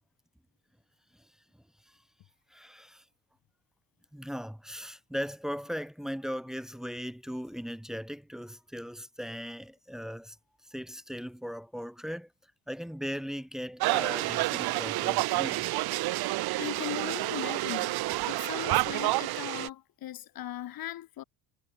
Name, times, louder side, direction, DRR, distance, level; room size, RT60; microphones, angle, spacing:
voice 1, 2.5-3.0 4.1-10.4 10.6-12.3 12.7-15.7, equal, ahead, 2.7 m, -38 dB
sound 1, 13.8-19.7, right 19 dB, 60° right, 0.7 m, -29 dB
voice 2, 16.6-18.0 18.2-21.2, left 13 dB, 55° left, 2.4 m, -39 dB
cardioid pair, 155°, 43 cm